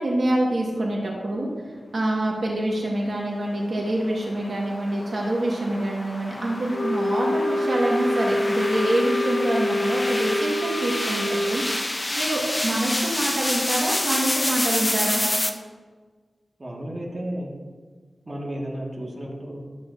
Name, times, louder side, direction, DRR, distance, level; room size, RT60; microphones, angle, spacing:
voice 1, 0.0-1.5 1.9-11.6 12.1-15.2, right 1 dB, 60° right, -3 dB, 1.6 m, -26 dB
sound 1, 3.4-15.5, left 1 dB, 20° left, 0.6 m, -29 dB
Wind instrument woodwind instrument, 6.7-11.6, left 1 dB, 75° left, 2.6 m, -25 dB
voice 2, 16.6-17.6 18.3-19.6, right 1 dB, 30° right, -3 dB, 1.8 m, -33 dB
13.0 x 8.3 x 2.7 m, 1.5 s
wide cardioid pair, 95°, 0 cm